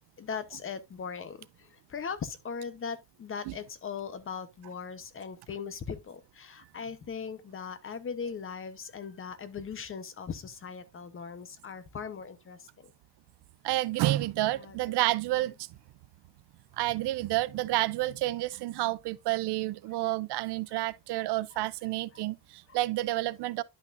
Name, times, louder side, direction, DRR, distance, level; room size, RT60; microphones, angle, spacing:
voice 1, 0.2-12.9 14.5-14.8 20.7-20.8 21.5-21.6 22.1-22.2 22.7-22.8, left 6 dB, 30° left, 0.9 m, -39 dB
voice 2, 13.6-15.5 16.8-23.6, right 17 dB, 75° right, 0.6 m, -29 dB
11.0 x 5.8 x 2.5 m
cardioid pair, 165°, 40 cm